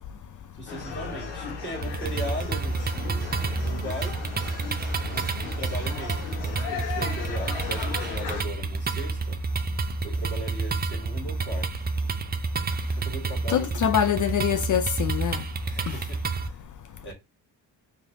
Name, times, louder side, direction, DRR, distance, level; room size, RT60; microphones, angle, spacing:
voice 1, 0.5-4.2 5.0-9.4 10.0-11.9 13.0-13.7 15.6-16.6 17.0-17.1, right 1 dB, 25° left, 2.0 m, -38 dB
sound 1, 0.7-8.4, left 5 dB, 70° left, 1.3 m, -36 dB
sound 2, 1.8-16.5, right 4 dB, 20° right, 0.5 m, -29 dB
voice 2, 13.5-15.4, left 9 dB, 40° left, 0.4 m, -24 dB
3.2 x 2.7 x 2.6 m
hypercardioid pair, 50°, 48 cm